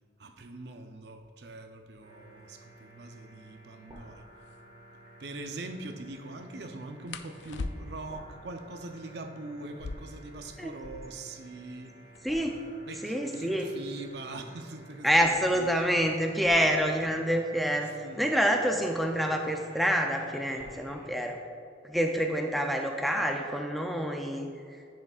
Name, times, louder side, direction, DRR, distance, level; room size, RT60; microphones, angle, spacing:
voice 1, 0.2-4.3 5.2-12.0 12.5-15.7 18.0-18.3, right 2 dB, 60° right, 6 dB, 0.6 m, -43 dB
sound 1, 2.0-21.1, right 1 dB, 30° right, 1.5 m, -53 dB
sound 2, 3.9-4.0 4.4-4.6 7.1-8.2 9.6-11.3 11.6-11.7 11.9-12.5 13.1-15.7 16.7-17.0 17.4-17.8 18.2-18.9, left 3 dB, 70° left, 0.4 m, -42 dB
voice 2, 12.2-12.6 13.0-13.7 15.0-17.9 18.2-21.4 21.8-24.8, equal, ahead, 2 dB, 0.4 m, -27 dB
10.5 x 6.4 x 2.4 m, 2.4 s
head